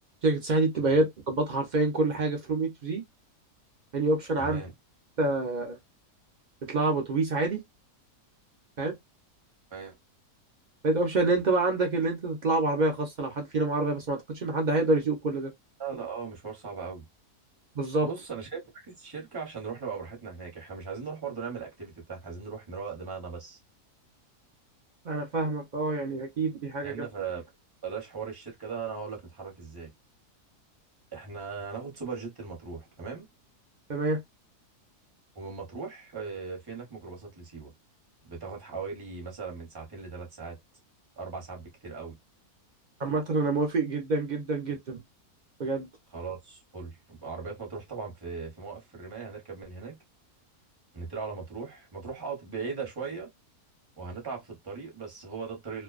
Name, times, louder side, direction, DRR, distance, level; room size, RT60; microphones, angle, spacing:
voice 1, 0.2-3.0 3.9-4.6 5.2-5.8 6.7-7.6 8.8-8.9 10.8-15.5 17.7-18.1 25.0-27.1 33.9-34.2 43.0-45.0 45.6-45.9, right 2 dB, 60° right, 0.4 m, -27 dB
voice 2, 4.4-4.7 9.7-9.9 15.8-17.0 18.0-18.6 18.9-23.6 26.8-27.5 27.8-29.9 31.1-33.3 35.3-37.7 38.2-40.6 41.2-42.1 46.1-50.0 50.9-53.3 54.0-55.8, right 5 dB, 20° right, 0.8 m, -38 dB
2.5 x 2.2 x 2.3 m
omnidirectional pair, 1.7 m